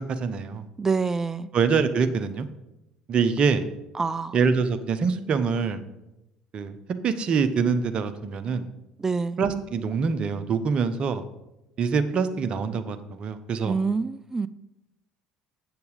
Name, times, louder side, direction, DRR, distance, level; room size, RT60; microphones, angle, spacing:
voice 1, 0.0-0.6 1.5-2.5 3.1-3.6 4.3-5.8 6.5-6.7 7.0-8.7 9.4-11.2 11.8-13.8, right 5 dB, 40° right, 10 dB, 0.8 m, -25 dB
voice 2, 0.8-1.5 4.0-4.3 9.0-9.4 13.7-14.5, right 4 dB, 15° right, 15 dB, 0.3 m, -26 dB
8.1 x 7.0 x 5.0 m, 0.91 s
figure-of-eight pair, 60°, 3 cm